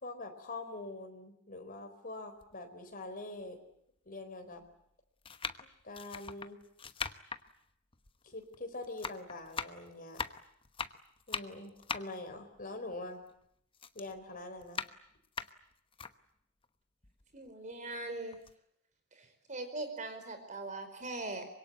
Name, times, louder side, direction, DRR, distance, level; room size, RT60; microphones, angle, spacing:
voice 1, 0.0-3.6 4.0-4.6 5.8-6.6 8.3-10.2 11.3-13.2 13.9-14.8, left 2 dB, 40° left, 5 dB, 4.5 m, -44 dB
sound 1, 2.4-2.5 3.4-3.5 4.5-4.7 5.2-8.6 8.8-13.4 13.7-16.1 16.6-16.7 17.0-18.0 18.3-18.5, left 5 dB, 25° left, 1.0 m, -41 dB
voice 2, 17.3-18.4 19.2-21.5, right 2 dB, 35° right, 8 dB, 4.7 m, -41 dB
25.0 x 22.5 x 9.5 m, 0.73 s
head